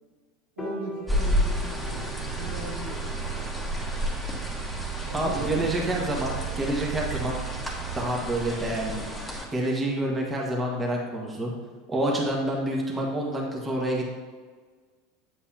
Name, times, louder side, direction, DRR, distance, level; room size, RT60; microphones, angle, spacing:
Piano, 0.6-6.9, left 1 dB, 20° left, 1.3 m, -44 dB
voice 1, 0.6-3.6 5.0-5.8, right 1 dB, 90° right, -4 dB, 1.7 m, -38 dB
sound 1, 1.1-9.5, left 1 dB, ahead, 1.5 m, -32 dB
sound 2, 1.3-8.8, right 8 dB, 60° right, 0.4 m, -36 dB
voice 2, 5.1-7.4 7.9-9.0 9.5-11.5 11.9-14.1, right 1 dB, 20° right, -2 dB, 1.5 m, -28 dB
8.3 x 5.4 x 2.8 m, 1.5 s
hypercardioid pair, 90°, 0 cm